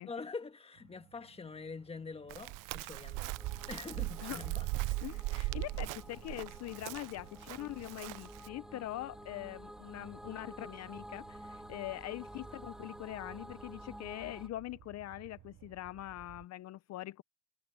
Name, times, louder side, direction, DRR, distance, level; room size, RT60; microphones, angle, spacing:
voice 1, 0.0-3.3 3.7-4.7 5.3-5.5, left 4 dB, 20° left, 1.4 m, -45 dB
sound 1, 0.7-16.5, right 12 dB, 65° right, 2.0 m, -60 dB
Chirp tweet, 2.3-8.5, right 21 dB, 90° right, 0.5 m, -39 dB
sound 2, 3.4-14.5, equal, ahead, 1.5 m, -51 dB
voice 2, 5.0-17.2, left 15 dB, 55° left, 0.6 m, -43 dB
cardioid pair, 125°, 31 cm